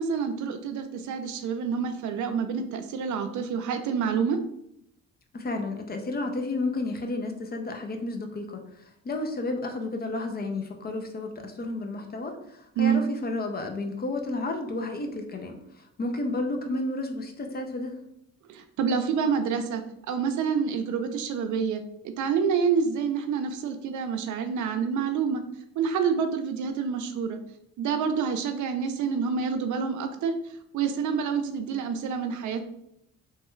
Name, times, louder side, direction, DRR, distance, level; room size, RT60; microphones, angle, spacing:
voice 1, 0.0-4.4 12.8-13.0 18.5-25.4 25.8-27.4 27.8-30.3 30.7-32.6, right 6 dB, 75° right, 7 dB, 0.5 m, -27 dB
voice 2, 5.3-8.6 9.0-18.0, left 2 dB, 30° left, 5 dB, 0.5 m, -32 dB
3.1 x 2.2 x 3.0 m, 0.76 s
cardioid pair, 90°, 30 cm